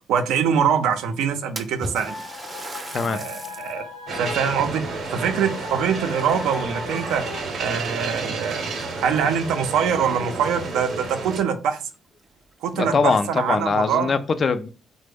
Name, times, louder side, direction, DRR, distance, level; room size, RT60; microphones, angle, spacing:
voice 1, 0.1-2.1 3.0-3.8 4.2-4.8 5.1-7.2 7.6-8.7 9.0-11.8 12.6-14.2, right 7 dB, 90° right, 0.4 m, -24 dB
Splash splatter, 1.6-3.9 4.3-4.4 5.4-6.4 6.8-7.2 8.0-8.1 8.6-8.7 10.9-11.0 11.3-11.4 11.9-12.0 12.4-12.5 13.3-13.8, right 3 dB, 30° right, 0.4 m, -37 dB
sound 1, 2.1-7.4, left 4 dB, 85° left, 0.7 m, -37 dB
voice 2, 2.9-3.2 12.7-14.7, left 4 dB, 45° left, 0.3 m, -22 dB
sound 2, 4.1-11.4, right 3 dB, 60° right, 0.7 m, -31 dB
3.3 x 2.0 x 3.4 m
cardioid pair, 90°, 0 cm